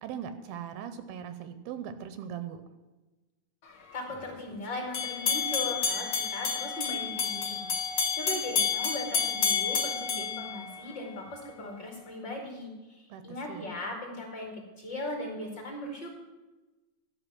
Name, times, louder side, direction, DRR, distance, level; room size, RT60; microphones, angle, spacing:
voice 1, 0.0-2.6 13.1-13.7, right 8 dB, 80° right, 10 dB, 2.5 m, -40 dB
voice 2, 3.9-16.2, left 1 dB, 30° left, 1 dB, 2.6 m, -38 dB
sound 1, 4.9-11.2, left 6 dB, 70° left, 1.1 m, -30 dB
12.0 x 5.9 x 9.1 m, 1.2 s
omnidirectional pair, 4.4 m